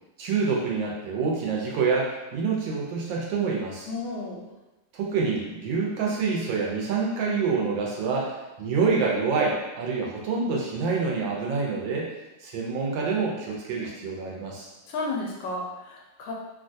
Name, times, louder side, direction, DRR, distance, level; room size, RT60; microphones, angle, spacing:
voice 1, 0.2-3.9 4.9-12.1 12.4-14.7, right 4 dB, 85° right, -2 dB, 1.4 m, -27 dB
voice 2, 3.9-4.5 14.9-16.3, left 2 dB, 75° left, -2 dB, 1.2 m, -32 dB
3.3 x 2.3 x 2.6 m, 1.0 s
omnidirectional pair, 2.1 m